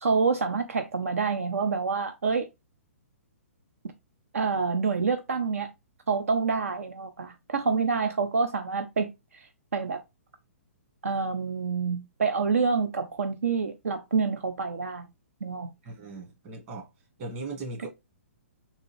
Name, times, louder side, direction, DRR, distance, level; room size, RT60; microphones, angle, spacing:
voice 1, 0.0-2.5 4.3-5.7 6.1-9.5 9.7-10.0 11.0-15.1 15.4-15.7 17.8-17.9, right 5 dB, 75° right, 0.4 m, -27 dB
voice 2, 15.8-16.9 17.2-17.9, right 2 dB, 35° right, 1.6 m, -38 dB
3.6 x 2.6 x 3.0 m
hypercardioid pair, 125°, 8 cm